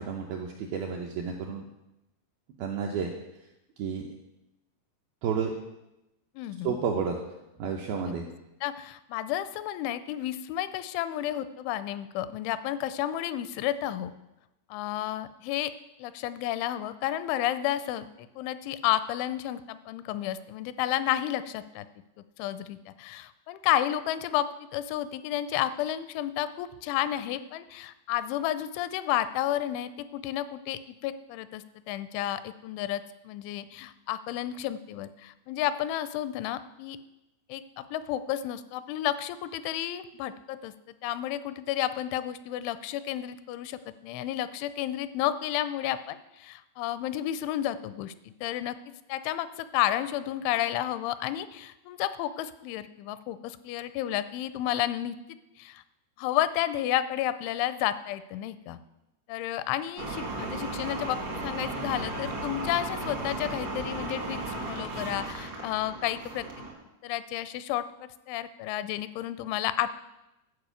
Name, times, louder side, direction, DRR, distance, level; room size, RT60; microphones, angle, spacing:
voice 1, 0.0-1.7 2.6-3.1 3.8-4.0 5.2-5.5 6.6-7.2 7.6-8.3, right 6 dB, 80° right, 1 dB, 2.2 m, -31 dB
voice 2, 6.4-6.8 8.6-14.1 14.7-15.7 16.0-21.9 22.4-37.0 37.5-40.7 41.0-48.8 49.1-55.2 55.6-55.8 56.2-58.8 59.3-66.7 67.0-67.9 68.3-69.9, left 12 dB, 85° left, 14 dB, 2.9 m, -31 dB
sound 1, 60.0-66.7, right 2 dB, 60° right, 1.1 m, -35 dB
12.0 x 5.2 x 8.1 m, 0.94 s
omnidirectional pair, 5.4 m